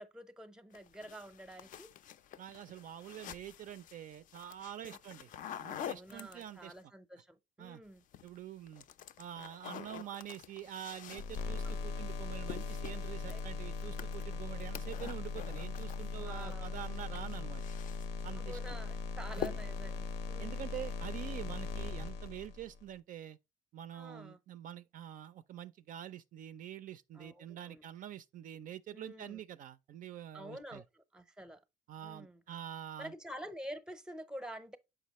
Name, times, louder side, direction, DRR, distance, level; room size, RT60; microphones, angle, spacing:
voice 1, 0.0-1.9 4.8-5.0 5.8-8.0 11.6-11.7 13.3-13.4 14.5-14.8 16.2-16.7 18.4-20.6 23.9-24.4 27.1-27.8 28.9-29.4 30.3-31.6 32.0-32.4 33.0-34.8, equal, 5° right, 0.6 m, -48 dB
sound 1, 0.7-6.8 7.9-8.4 8.7-16.6 16.8-18.3 18.7-19.0 19.3-19.9, left 10 dB, 50° left, 0.4 m, -47 dB
voice 2, 2.4-5.3 5.6-6.7 7.6-7.8 8.2-8.8 9.2-17.6 18.2-18.8 19.4-19.6 20.4-23.4 23.7-30.8 31.9-33.1, right 11 dB, 55° right, 0.4 m, -46 dB
sound 2, 11.2-22.8, left 4 dB, 90° left, 0.7 m, -39 dB
6.6 x 4.9 x 2.9 m
cardioid pair, 110°, 17 cm